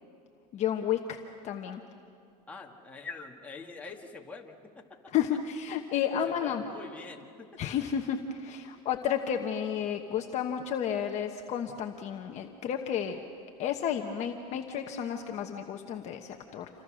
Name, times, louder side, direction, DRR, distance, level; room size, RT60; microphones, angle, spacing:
voice 1, 0.5-1.2 1.4-1.8 5.1-6.6 7.6-13.2 13.6-16.7, left 9 dB, 30° left, 3 dB, 1.1 m, -32 dB
voice 2, 2.5-5.0 6.3-7.6, left 4 dB, 5° left, -1 dB, 1.9 m, -45 dB
28.0 x 25.5 x 6.4 m, 2.6 s
supercardioid pair, 150°, 21 cm